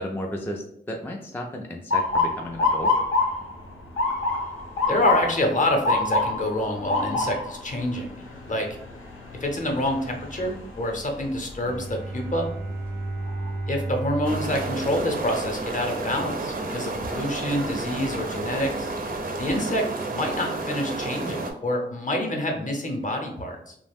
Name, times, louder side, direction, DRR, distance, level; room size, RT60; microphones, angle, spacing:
voice 1, 0.0-3.0, equal, 10° left, 1 dB, 0.3 m, -33 dB
Motor vehicle (road) / Siren, 1.9-13.8 14.2-14.7 15.5-15.8 17.6-17.9 18.4-18.5 18.9-19.6, left 3 dB, 85° left, 0.7 m, -28 dB
voice 2, 4.9-8.7 9.4-12.5 13.7-18.9 19.4-19.8 20.1-23.8, left 1 dB, 40° left, 2 dB, 0.7 m, -27 dB
Bowed string instrument, 11.6-16.0, right 2 dB, 90° right, 0.6 m, -33 dB
sound 1, 14.2-21.5, right 2 dB, 45° right, 0.5 m, -31 dB
2.3 x 2.0 x 3.4 m, 0.72 s
cardioid pair, 60°, 21 cm